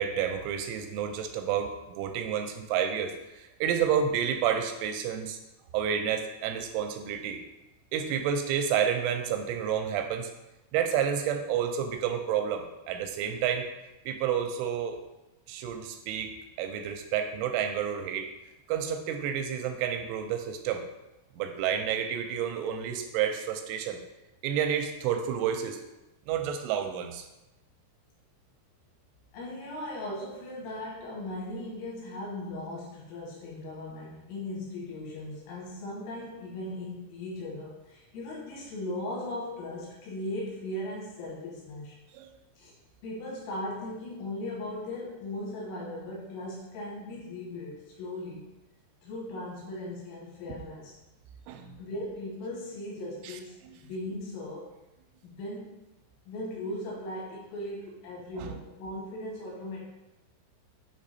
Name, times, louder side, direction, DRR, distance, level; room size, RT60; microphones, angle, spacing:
voice 1, 0.0-5.4 5.7-7.4 7.9-10.3 10.7-13.7 14.1-15.0 15.5-18.3 18.7-20.8 21.3-24.0 24.4-25.8 26.3-27.3 42.1-42.3 51.5-51.8 53.2-53.3 58.4-58.5, right 8 dB, 85° right, 6 dB, 2.7 m, -30 dB
voice 2, 29.3-42.0 42.6-42.7 43.0-48.5 49.0-51.0 51.8-54.7 55.2-55.8 56.3-59.9, left 1 dB, 85° left, -5 dB, 4.0 m, -38 dB
8.2 x 3.2 x 4.1 m, 0.96 s
omnidirectional pair, 5.7 m